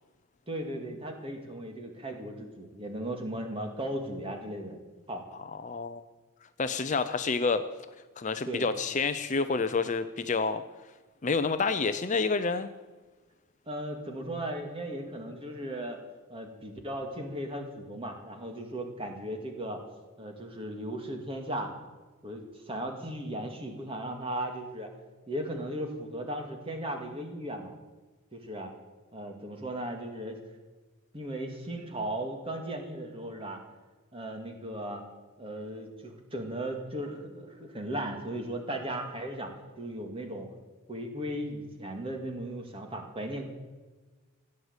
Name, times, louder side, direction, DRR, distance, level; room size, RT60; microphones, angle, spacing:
voice 1, 0.5-4.8 5.1-5.3 8.4-8.7 13.7-16.0 16.3-19.8 20.2-21.7 22.2-24.9 25.3-27.7 28.3-28.7 29.1-30.4 31.1-33.6 34.1-35.0 35.4-39.5 39.8-40.5 40.9-43.5, right 1 dB, 25° right, 3 dB, 2.3 m, -36 dB
voice 2, 5.6-6.0 6.6-7.6 8.2-10.6 11.2-12.7, left 4 dB, 35° left, 10 dB, 0.5 m, -28 dB
16.5 x 9.5 x 8.1 m, 1.3 s
head